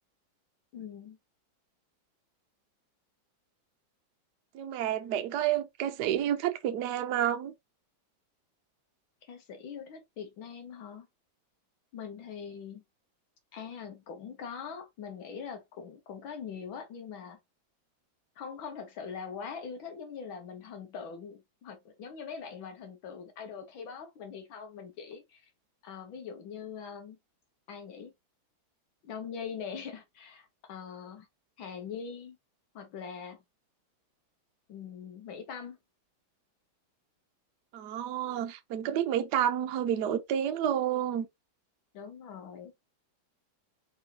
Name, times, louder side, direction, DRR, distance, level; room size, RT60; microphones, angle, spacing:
voice 1, 0.7-1.2 9.2-11.1 11.9-12.8 13.5-17.4 18.4-25.5 25.8-27.2 27.7-28.1 29.0-31.3 31.6-32.4 32.7-33.4 34.7-35.8 41.9-42.7, left 6 dB, 75° left, 1.8 m, -42 dB
voice 2, 4.5-7.5 37.7-41.3, right 10 dB, 65° right, 1.1 m, -30 dB
4.3 x 4.1 x 2.7 m
omnidirectional pair, 2.2 m